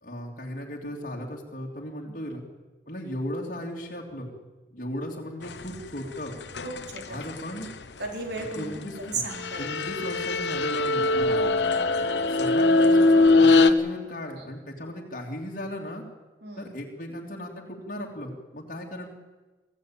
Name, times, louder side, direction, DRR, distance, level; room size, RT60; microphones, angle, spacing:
voice 1, 0.0-2.4 2.9-4.3 4.7-6.3 7.1-7.7 8.4-9.2 9.6-11.4 12.3-16.0 16.6-19.1, equal, 50° left, -1 dB, 3.0 m, -36 dB
sound 1, 6.6-7.3 9.3-13.7, left 3 dB, 85° left, 1.1 m, -21 dB
voice 2, 6.6-7.2 8.0-10.1 11.4-12.3 14.4-14.5 16.4-16.7, right 3 dB, 75° right, 2 dB, 4.1 m, -37 dB
23.5 x 15.5 x 8.9 m, 1.3 s
head